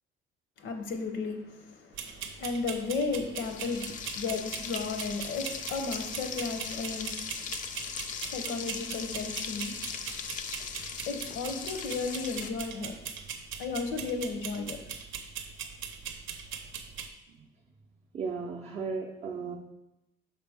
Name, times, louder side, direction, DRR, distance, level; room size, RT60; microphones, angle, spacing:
voice 1, 0.6-13.0 13.6-14.8, left 4 dB, 70° left, 5 dB, 0.8 m, -35 dB
sound 1, 1.9-17.1, right 7 dB, 75° right, 0.6 m, -41 dB
Frying (food), 3.4-12.5, left 7 dB, 40° left, 0.4 m, -39 dB
voice 2, 18.1-19.6, right 5 dB, 35° right, -2 dB, 0.5 m, -35 dB
5.9 x 4.6 x 3.5 m, 0.90 s
cardioid pair, 175°, 20 cm